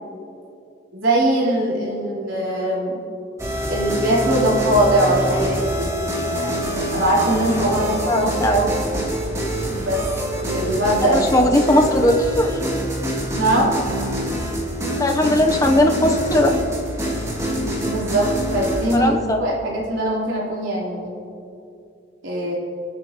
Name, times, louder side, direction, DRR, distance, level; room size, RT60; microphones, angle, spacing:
voice 1, 0.9-3.0 3.7-5.9 6.3-8.7 9.7-10.0 10.5-11.3 13.4-13.7 17.8-21.2 22.2-22.5, right 1 dB, 85° right, -5 dB, 3.8 m, -21 dB
sound 1, 3.4-19.0, equal, 15° right, 2.3 m, -25 dB
voice 2, 7.7-8.6 11.1-12.6 15.0-16.5 18.9-19.4, left 1 dB, 20° left, 3 dB, 0.9 m, -18 dB
26.5 x 9.6 x 3.0 m, 2.7 s
head